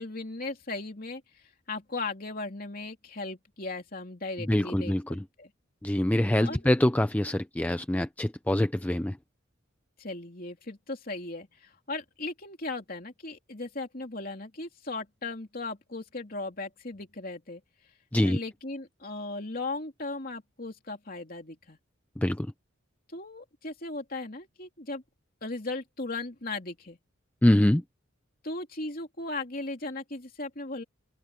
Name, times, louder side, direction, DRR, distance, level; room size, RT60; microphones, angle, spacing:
voice 1, 0.0-5.5 6.4-6.6 10.0-17.6 18.2-21.8 23.1-25.0 25.4-27.0 28.4-30.8, left 2 dB, 45° left, 3.1 m, -37 dB
voice 2, 4.5-5.2 5.8-9.2 18.1-18.4 22.2-22.5 27.4-27.8, left 1 dB, 10° left, 0.4 m, -24 dB
open air
head